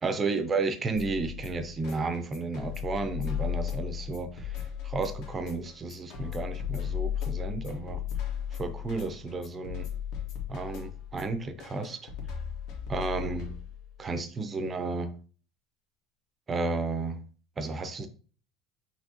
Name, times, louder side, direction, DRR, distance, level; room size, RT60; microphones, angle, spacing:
voice 1, 0.0-8.0 8.5-9.9 10.5-12.1 12.9-13.5 14.0-15.1 16.5-17.2 17.6-18.1, right 3 dB, 20° right, 9 dB, 0.5 m, -32 dB
sound 1, 0.9-13.9, left 9 dB, 65° left, 1.4 m, -36 dB
6.0 x 2.9 x 2.8 m, 0.39 s
cardioid pair, 160°, 0 cm